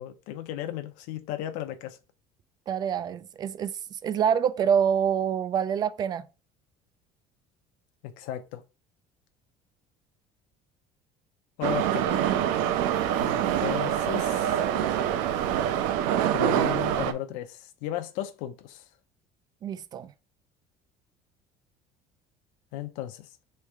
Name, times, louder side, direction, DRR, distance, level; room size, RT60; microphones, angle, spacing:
voice 1, 0.0-2.0 8.0-8.6 11.6-12.1 13.2-14.6 16.3-18.8 22.7-23.3, left 12 dB, 80° left, 0.6 m, -35 dB
voice 2, 2.7-6.3 19.6-20.1, right 8 dB, 30° right, 0.3 m, -26 dB
Subway metro underground, 11.6-17.1, right 10 dB, 85° right, 0.5 m, -25 dB
3.2 x 3.2 x 4.7 m
cardioid pair, 160°, 14 cm